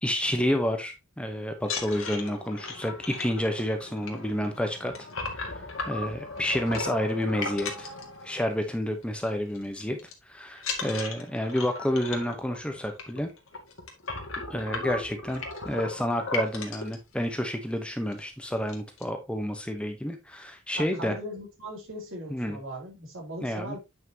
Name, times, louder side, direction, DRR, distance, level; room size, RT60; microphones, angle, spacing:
voice 1, 0.0-4.9 5.3-7.9 8.2-10.0 10.3-13.3 14.5-21.2 22.3-22.6 23.4-23.7, equal, 5° left, 0.9 m, -30 dB
sound 1, 1.6-8.7 9.0-9.3 9.5-10.1 10.6-16.9 17.6-17.7 18.0-18.2 18.5-19.0, left 3 dB, 70° left, 2.2 m, -36 dB
voice 2, 20.8-23.8, equal, 65° right, 3.7 m, -39 dB
9.3 x 5.7 x 2.9 m
head